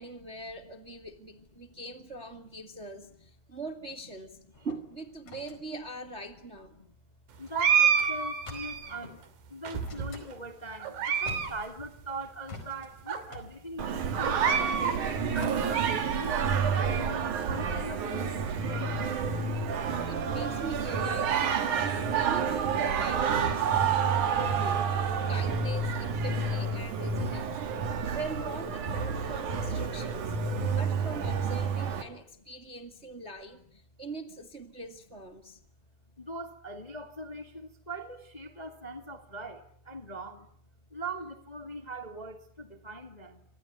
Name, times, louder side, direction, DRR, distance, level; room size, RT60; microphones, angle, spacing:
voice 1, 0.0-4.4 4.6-6.7 20.1-27.6 28.0-30.4 30.7-35.6, right 2 dB, 25° right, 1.7 m, -42 dB
voice 2, 1.7-3.2 6.7-6.9 7.4-9.2 9.5-14.8 15.3-16.4 16.7-18.6 32.3-32.4 35.4-35.6 36.2-40.5 40.9-43.4, right 2 dB, 15° left, 1.6 m, -41 dB
sound 1, 4.5-6.9 7.4-7.5 7.8-7.9 8.4-9.3 9.8-10.3 10.8-10.9 11.1-12.1 12.5-15.5, left 3 dB, 50° left, 5.8 m, -47 dB
sound 2, 7.5-9.0 9.6-10.3 10.8-11.5 11.8-11.9 12.6-12.7 13.1-13.2 14.2-15.0 15.4-16.4, right 7 dB, 90° right, 4.2 m, -28 dB
Singing, 13.8-32.0, right 6 dB, 60° right, 3.6 m, -29 dB
26.5 x 26.5 x 8.3 m
omnidirectional pair, 4.0 m